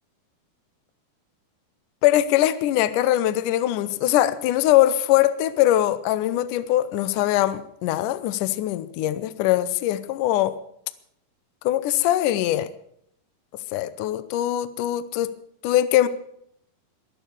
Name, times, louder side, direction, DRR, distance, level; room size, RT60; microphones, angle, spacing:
voice 1, 2.0-10.6 11.7-12.7 13.7-15.3 15.6-16.1, left 13 dB, 75° left, 15 dB, 2.1 m, -22 dB
22.0 x 9.4 x 6.8 m, 0.70 s
omnidirectional pair, 4.1 m